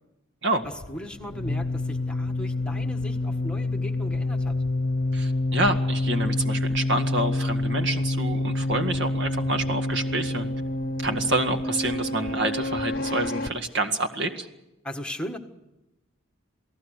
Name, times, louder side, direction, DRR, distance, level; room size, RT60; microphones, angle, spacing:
sound 1, 0.6-13.5, left 2 dB, 45° left, 0.9 m, -27 dB
voice 1, 0.6-4.5 14.8-15.4, equal, 5° left, 4 dB, 1.5 m, -37 dB
voice 2, 5.1-10.5 11.0-14.5, right 1 dB, 60° right, 6 dB, 1.9 m, -27 dB
28.5 x 18.0 x 6.6 m, 0.94 s
head